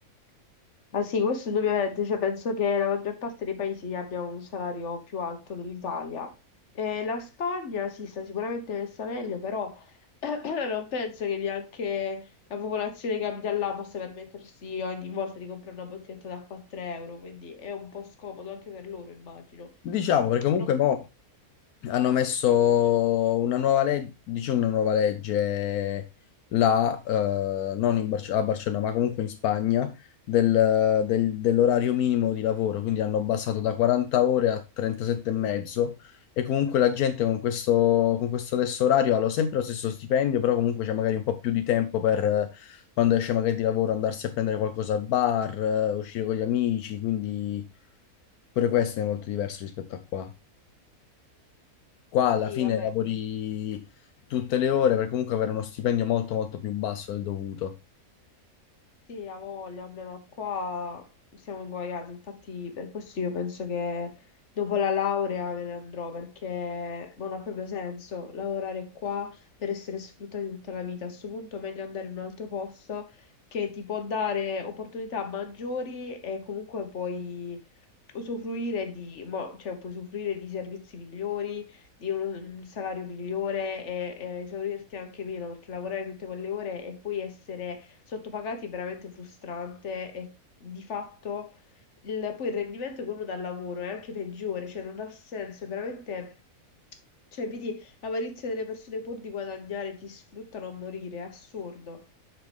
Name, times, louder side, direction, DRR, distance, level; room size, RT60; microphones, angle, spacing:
voice 1, 0.9-6.3 6.7-9.8 10.2-19.7 52.4-53.2 59.1-61.1 61.5-64.2 64.6-73.1 73.5-77.6 78.1-90.3 90.6-91.5 92.0-96.3 97.3-102.0, left 6 dB, 55° left, 1.5 m, -33 dB
voice 2, 19.8-21.0 21.8-26.0 26.5-29.9 30.3-47.7 48.6-50.3 52.1-53.8 54.3-57.7, left 10 dB, 80° left, 1.2 m, -25 dB
8.1 x 5.9 x 3.4 m
omnidirectional pair, 1.5 m